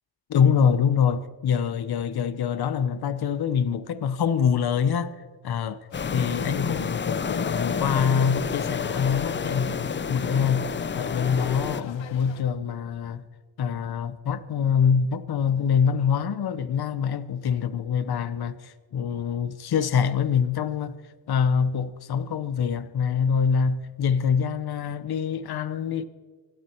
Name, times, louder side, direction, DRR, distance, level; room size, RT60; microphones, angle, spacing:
voice 1, 0.3-13.2 13.6-21.0 21.3-26.0, left 7 dB, 55° left, 0.9 m, -25 dB
sound 1, 5.9-12.4, left 6 dB, 75° left, 1.4 m, -44 dB
sound 2, 5.9-11.8, left 5 dB, 25° left, 0.5 m, -29 dB
25.5 x 12.0 x 4.5 m
cardioid pair, 105°, 45 cm